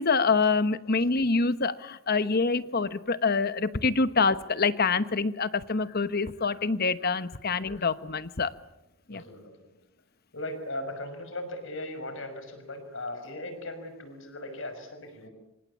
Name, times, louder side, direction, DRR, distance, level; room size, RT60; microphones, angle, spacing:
voice 1, 0.0-8.5 9.1-9.2, left 4 dB, 45° left, 13 dB, 1.1 m, -26 dB
voice 2, 9.1-9.7 10.3-15.3, left 1 dB, 60° left, 9 dB, 5.8 m, -38 dB
26.5 x 25.0 x 8.6 m, 0.90 s
head